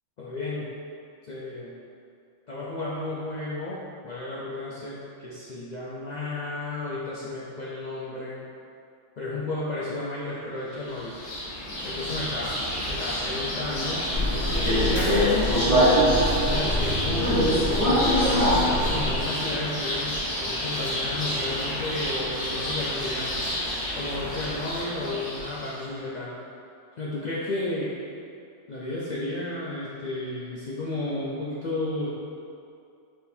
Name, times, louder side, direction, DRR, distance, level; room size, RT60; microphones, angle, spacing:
voice 1, 0.2-0.7 1.2-1.8 2.5-8.4 9.2-11.1 11.8-12.5 12.9-14.0 14.8-15.7 16.4-20.1 20.4-23.4 24.0-26.3 27.0-27.9 28.7-32.1, left 2 dB, 55° left, -7 dB, 0.5 m, -32 dB
sound 1, 10.7-25.9, left 1 dB, 75° left, 1.3 m, -31 dB
Subway metro underground, 14.1-19.3, equal, 30° right, 1.2 m, -22 dB
4.3 x 3.7 x 2.7 m, 2.5 s
omnidirectional pair, 1.2 m